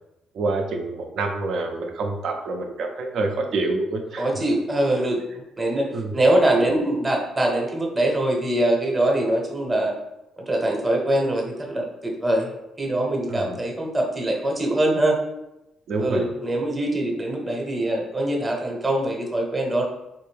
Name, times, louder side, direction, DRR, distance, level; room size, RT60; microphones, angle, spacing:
voice 1, 0.3-4.3 5.9-6.1 13.3-13.6 15.9-16.3, right 3 dB, 70° right, 3 dB, 0.6 m, -27 dB
voice 2, 4.2-5.2 5.6-9.9 10.5-15.2 16.0-19.8, right 1 dB, 25° right, 0 dB, 0.9 m, -23 dB
3.5 x 2.5 x 3.4 m, 0.91 s
cardioid pair, 90°, 0 cm